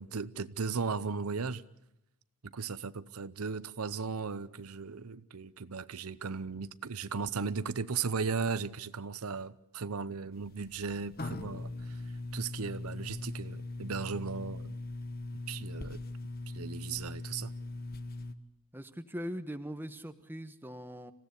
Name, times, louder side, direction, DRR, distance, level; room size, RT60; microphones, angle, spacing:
voice 1, 0.0-1.6 2.4-12.0 12.3-14.7 15.5-16.0 16.5-17.5, right 5 dB, 85° right, 0.8 m, -36 dB
sound 1, 10.3-18.3, left 2 dB, 45° left, 1.2 m, -40 dB
voice 2, 18.7-21.1, equal, 10° right, 1.0 m, -41 dB
26.5 x 16.0 x 8.3 m
head